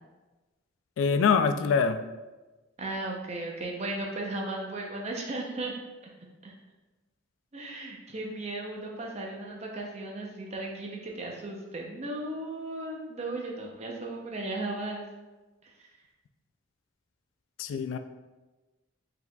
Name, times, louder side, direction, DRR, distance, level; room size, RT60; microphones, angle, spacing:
voice 1, 1.0-2.0 17.6-18.0, left 5 dB, 80° left, 9 dB, 0.3 m, -24 dB
voice 2, 2.8-5.7 6.4-6.5 7.5-15.1, right 2 dB, 35° right, 0 dB, 0.6 m, -36 dB
4.7 x 3.7 x 2.2 m, 1.2 s
head